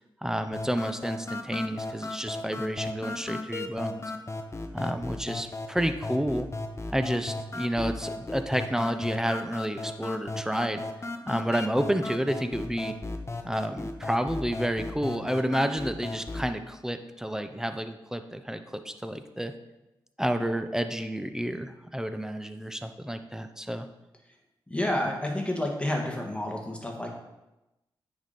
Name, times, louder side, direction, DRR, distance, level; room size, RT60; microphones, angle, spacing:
voice 1, 0.2-4.0 4.7-6.5 6.9-10.8 11.3-12.9 13.4-19.5 20.2-23.9, equal, 5° right, 8 dB, 0.8 m, -30 dB
sound 1, 0.5-16.5, left 2 dB, 30° left, 0.8 m, -36 dB
voice 2, 24.7-27.1, left 1 dB, 10° left, 0 dB, 1.8 m, -29 dB
9.2 x 5.2 x 4.3 m, 0.97 s
cardioid pair, 55°, 9 cm